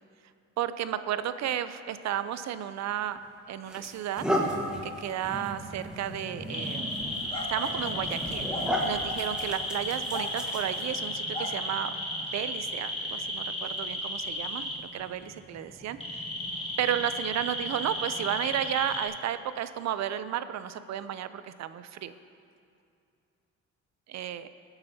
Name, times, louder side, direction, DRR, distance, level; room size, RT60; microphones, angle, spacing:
voice 1, 0.6-3.2 3.5-4.3 4.8-7.0 7.5-8.5 8.8-11.9 12.2-16.2 16.8-22.1 24.1-24.5, right 10 dB, 65° right, 12 dB, 0.5 m, -33 dB
sound 1, 2.9-3.1 3.6-11.0, equal, 5° right, 1.4 m, -34 dB
sound 2, 6.5-19.0, left 1 dB, 20° left, 1.8 m, -34 dB
19.0 x 8.0 x 2.8 m, 2.5 s
cardioid pair, 90°, 30 cm